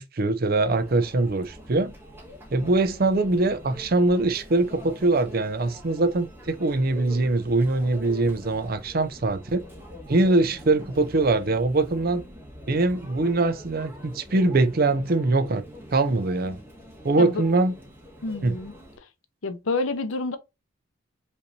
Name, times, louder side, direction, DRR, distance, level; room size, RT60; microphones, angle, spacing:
voice 1, 0.0-1.9 2.5-9.6 10.1-12.2 12.7-15.6 15.9-16.6 17.0-17.7 18.4-18.6, right 2 dB, 45° right, 0.5 m, -23 dB
Conversation / Chatter / Crowd, 0.5-19.0, equal, 10° right, 1.4 m, -44 dB
voice 2, 18.2-18.7 19.4-20.4, left 3 dB, 70° left, 0.7 m, -28 dB
5.2 x 3.2 x 2.7 m
head